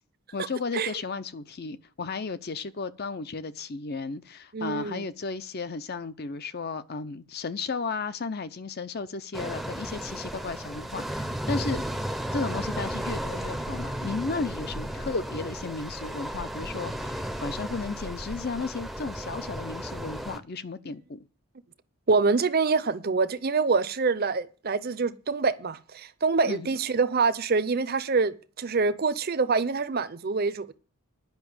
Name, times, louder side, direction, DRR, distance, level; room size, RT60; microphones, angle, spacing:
voice 1, 0.3-11.8 12.3-21.3 26.4-26.7, left 4 dB, 45° left, 0.6 m, -34 dB
voice 2, 4.5-5.1 22.1-30.7, right 4 dB, 45° right, 0.6 m, -25 dB
sound 1, 9.3-20.4, equal, ahead, 0.6 m, -34 dB
10.5 x 5.7 x 8.7 m
head